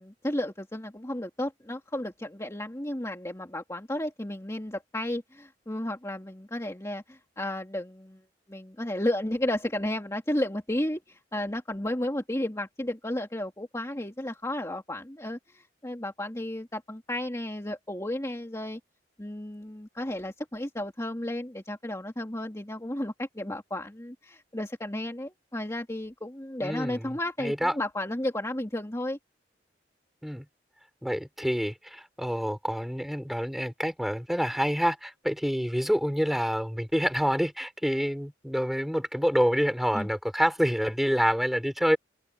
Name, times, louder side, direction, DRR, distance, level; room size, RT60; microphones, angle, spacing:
voice 1, 0.0-8.2 8.5-18.8 19.2-29.2 39.9-40.1, left 1 dB, 15° left, 2.4 m, -33 dB
voice 2, 26.6-27.1 27.4-27.7 30.2-30.4 31.0-42.0, equal, ahead, 4.8 m, -27 dB
open air
head